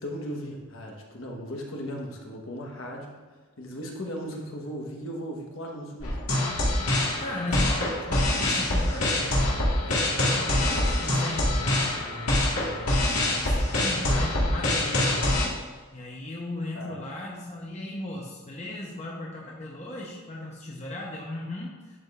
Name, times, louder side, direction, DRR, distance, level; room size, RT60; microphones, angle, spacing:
voice 1, 0.0-3.2 3.6-6.2 14.1-14.3 16.7-17.0, equal, 60° left, 0 dB, 1.2 m, -37 dB
sound 1, 6.0-15.5, left 1 dB, 90° left, 1.8 m, -25 dB
voice 2, 7.2-9.6 10.0-15.4 15.9-22.0, left 1 dB, 30° left, -3 dB, 0.8 m, -37 dB
11.0 x 5.0 x 2.5 m, 1.4 s
head